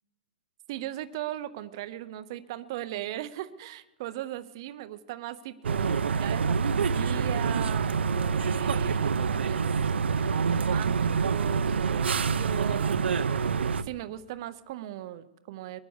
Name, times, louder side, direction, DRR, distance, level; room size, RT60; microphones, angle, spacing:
voice 1, 0.7-13.4 13.8-15.8, right 13 dB, 25° right, 13 dB, 0.6 m, -38 dB
sound 1, 5.6-13.8, right 5 dB, 80° right, 0.8 m, -26 dB
22.0 x 9.4 x 7.1 m, 0.98 s
hypercardioid pair, 175°, 6 cm